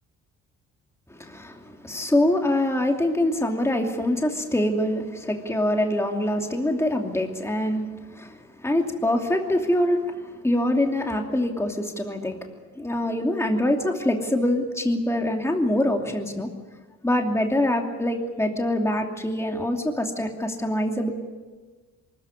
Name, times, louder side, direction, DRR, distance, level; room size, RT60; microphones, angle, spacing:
voice 1, 1.1-12.4 12.7-16.5 17.0-21.1, left 1 dB, 10° left, 3 dB, 2.7 m, -24 dB
24.0 x 14.5 x 9.7 m, 1.3 s
cardioid pair, 90°, 30 cm